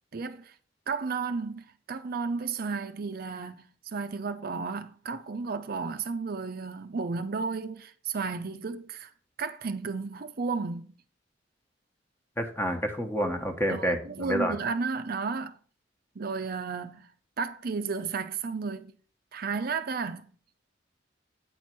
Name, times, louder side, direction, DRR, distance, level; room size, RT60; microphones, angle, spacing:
voice 1, 0.1-0.5 0.9-9.1 9.4-10.9 13.7-15.6 16.2-17.1 17.4-18.9 19.3-20.3, right 4 dB, 55° right, 0.5 m, -33 dB
voice 2, 12.4-14.6, equal, 15° left, 1.2 m, -29 dB
9.1 x 4.4 x 6.0 m
head